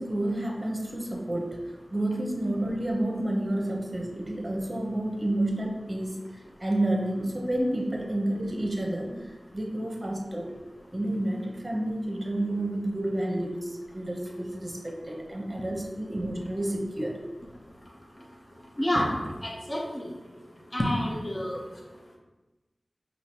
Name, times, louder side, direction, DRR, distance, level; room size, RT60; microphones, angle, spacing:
voice 1, 0.0-1.6 1.9-6.1 6.6-10.5 10.9-17.2, right 1 dB, 30° right, 1 dB, 0.7 m, -30 dB
voice 2, 18.8-19.1 19.4-20.1 20.7-21.6, left 1 dB, 30° left, -2 dB, 0.7 m, -28 dB
5.0 x 2.8 x 2.8 m, 1.1 s
wide cardioid pair, 55°, 0 cm